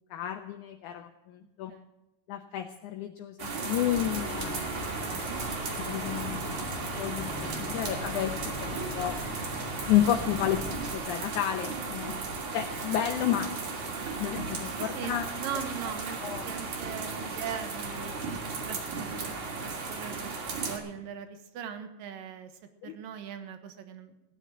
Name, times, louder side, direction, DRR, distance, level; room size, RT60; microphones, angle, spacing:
voice 1, 0.1-1.7 2.3-5.3 5.8-9.2 9.9-12.2 12.5-13.5 14.2-15.3 16.2-16.5 22.8-22.9, left 11 dB, 70° left, 5 dB, 2.2 m, -31 dB
sound 1, 3.4-20.8, right 4 dB, 60° right, 3.8 m, -35 dB
sound 2, 3.9-11.0, left 1 dB, 25° left, 3.0 m, -39 dB
voice 2, 5.1-5.5 12.1-12.3 14.8-16.2 16.4-18.1 18.6-20.3 20.7-22.5 22.8-24.1, right 8 dB, 85° right, 8 dB, 3.1 m, -40 dB
16.5 x 9.9 x 7.5 m, 0.96 s
omnidirectional pair, 3.8 m